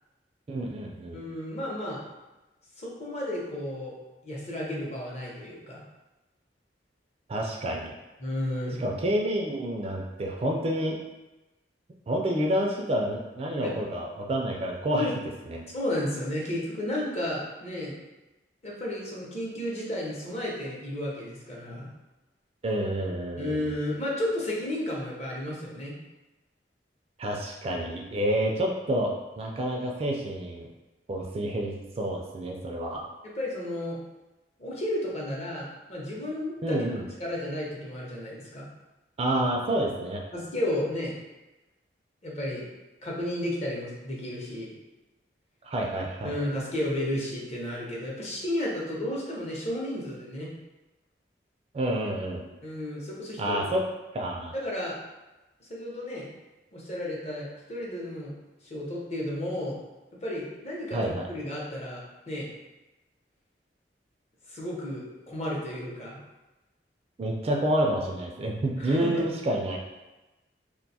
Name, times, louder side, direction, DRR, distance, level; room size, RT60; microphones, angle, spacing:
voice 1, 0.5-1.2 7.3-7.9 8.8-11.0 12.1-15.1 15.5-15.6 22.6-23.7 27.2-30.7 31.1-33.0 36.6-37.0 39.2-40.2 45.6-46.3 51.7-52.4 53.4-53.8 54.1-54.5 60.9-61.3 67.2-69.8, right 1 dB, 35° right, 0 dB, 0.3 m, -28 dB
voice 2, 1.1-2.0 2.8-3.9 4.2-5.8 8.2-8.8 13.6-13.8 14.9-15.1 15.7-18.0 18.6-21.9 23.4-25.9 33.3-34.0 34.6-36.8 37.2-38.6 40.3-41.1 42.2-42.6 43.0-44.7 46.2-50.5 52.6-53.6 54.5-54.9 55.7-56.3 56.7-58.3 58.6-59.8 60.2-62.0 62.3-62.5 64.5-66.2 68.8-69.2, left 1 dB, 40° left, -4 dB, 0.7 m, -32 dB
2.5 x 2.2 x 4.0 m, 1.1 s
head